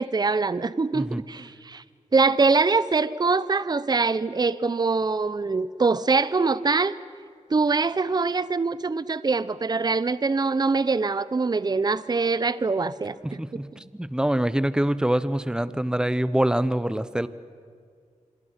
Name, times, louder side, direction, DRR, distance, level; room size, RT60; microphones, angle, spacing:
voice 1, 0.0-1.8 2.1-7.0 7.5-13.6, right 4 dB, 30° right, 16 dB, 0.6 m, -23 dB
voice 2, 13.2-13.7 13.9-17.3, right 1 dB, 5° right, 14 dB, 0.9 m, -25 dB
27.0 x 26.5 x 5.8 m, 2.1 s
wide cardioid pair, 80°, 13 cm